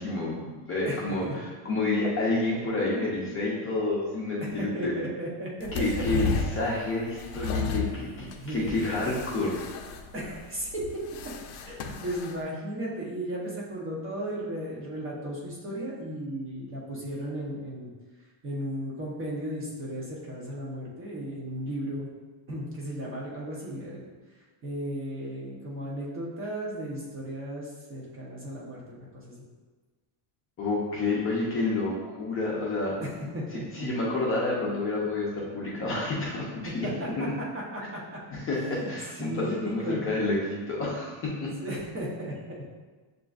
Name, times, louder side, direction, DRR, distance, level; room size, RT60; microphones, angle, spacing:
voice 1, 0.0-1.2 1.6-4.9 5.7-9.6 30.6-32.9 33.5-36.9 38.3-41.5, left 2 dB, 25° left, -5 dB, 0.6 m, -29 dB
voice 2, 0.8-1.3 4.4-5.7 8.4-8.7 10.1-11.0 11.6-17.9 18.4-22.1 22.5-24.1 24.6-29.5 33.0-33.9 36.8-37.3 37.5-38.2 38.8-40.0 41.6-42.7, right 1 dB, 25° right, -5 dB, 0.8 m, -35 dB
sound 1, 5.6-12.4, left 4 dB, 75° left, 0.6 m, -34 dB
7.3 x 2.6 x 2.3 m, 1.3 s
cardioid pair, 165°, 49 cm